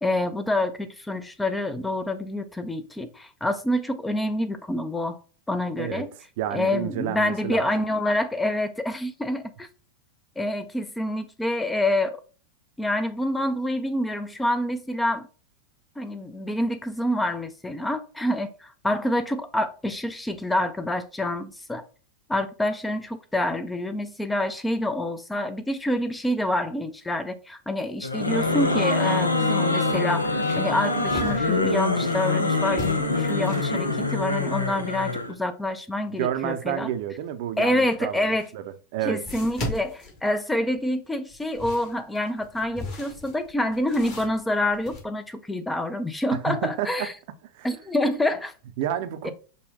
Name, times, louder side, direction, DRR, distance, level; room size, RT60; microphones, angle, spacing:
voice 1, 0.0-5.2 5.5-6.1 6.5-9.7 10.4-12.2 12.8-15.3 16.0-21.8 22.3-36.9 37.6-38.5 39.1-47.1 47.6-48.5 49.2-49.3, left 1 dB, 5° left, 0.5 m, -27 dB
voice 2, 6.4-7.7 36.2-38.6 38.9-39.2 46.3-47.1 47.5-47.7 48.8-49.3, right 11 dB, 50° right, 0.6 m, -30 dB
sound 1, 28.0-35.3, left 2 dB, 80° left, 0.6 m, -24 dB
sound 2, 29.9-32.3 32.7-33.8 38.0-38.1 39.3-40.8 41.3-45.0, left 1 dB, 35° left, 1.8 m, -37 dB
5.2 x 2.2 x 4.1 m
figure-of-eight pair, 90°, 0 cm